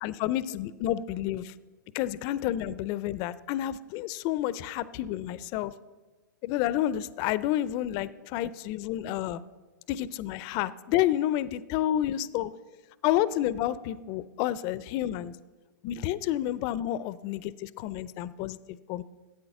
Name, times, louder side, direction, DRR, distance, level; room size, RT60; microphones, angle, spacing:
voice 1, 0.0-1.5 1.9-5.7 6.4-9.4 9.9-12.5 13.0-15.3 15.8-18.6 18.9-19.0, left 12 dB, 35° left, 17 dB, 0.5 m, -30 dB
13.0 x 8.7 x 5.9 m, 1.3 s
hypercardioid pair, 120°, 11 cm